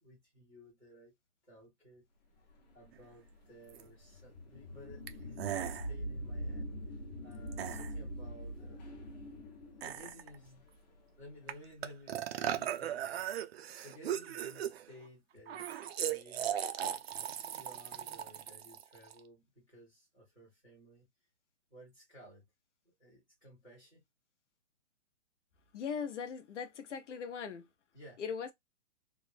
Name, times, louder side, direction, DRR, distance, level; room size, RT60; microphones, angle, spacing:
voice 1, 0.0-1.1 1.4-2.1 2.7-6.7 7.2-8.9 9.8-10.7 11.2-13.5 13.8-16.6 17.5-21.0 21.7-22.5 22.8-24.0 27.9-28.2, equal, ahead, 0.4 m, -56 dB
sound 1, 2.5-11.5, equal, 35° left, 0.8 m, -44 dB
sound 2, 3.7-3.8 5.1-5.2 5.4-5.9 7.5-7.9 9.8-10.3 11.5-11.6 11.8-14.9 15.5-19.2, right 10 dB, 55° right, 0.6 m, -37 dB
voice 2, 25.7-27.7 28.2-28.5, left 6 dB, 75° left, 0.7 m, -39 dB
3.1 x 2.1 x 3.3 m
hypercardioid pair, 170°, 36 cm